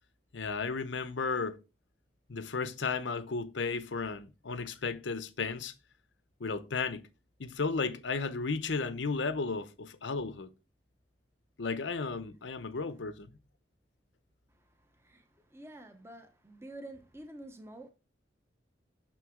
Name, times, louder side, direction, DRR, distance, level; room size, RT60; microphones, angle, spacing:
voice 1, 0.3-1.6 2.3-5.7 6.4-7.1 7.4-10.5 11.6-13.3, left 4 dB, 80° left, 0.7 m, -34 dB
voice 2, 14.8-17.9, right 1 dB, 15° right, 0.9 m, -49 dB
6.5 x 6.2 x 3.6 m
head